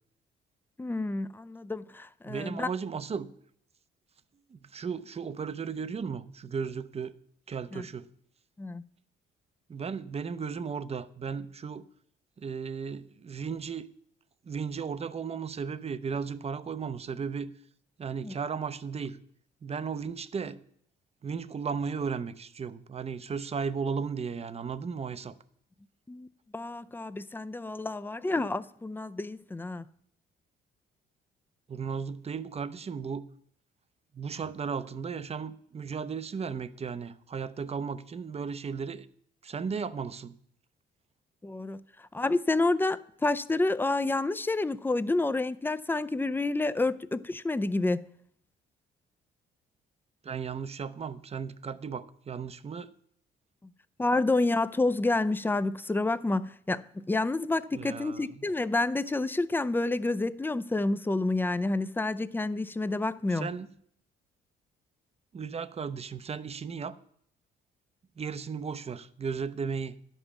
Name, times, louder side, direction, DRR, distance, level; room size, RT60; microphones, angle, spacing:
voice 1, 0.8-2.7 7.7-7.9 8.6-8.8 18.2-18.3 26.1-26.3 26.5-29.9 41.4-48.0 53.6-53.7 54.0-63.5, left 2 dB, 10° left, 0.4 m, -29 dB
voice 2, 2.2-3.3 4.5-7.2 7.5-8.1 9.7-11.8 12.4-13.9 14.5-17.5 18.0-19.2 19.6-20.6 21.2-25.3 31.7-33.3 34.1-39.1 39.4-40.4 50.2-52.9 57.7-58.4 63.3-63.7 65.3-67.0 68.2-70.0, right 6 dB, 30° right, 0.6 m, -35 dB
11.0 x 5.5 x 7.1 m
cardioid pair, 90°, 20 cm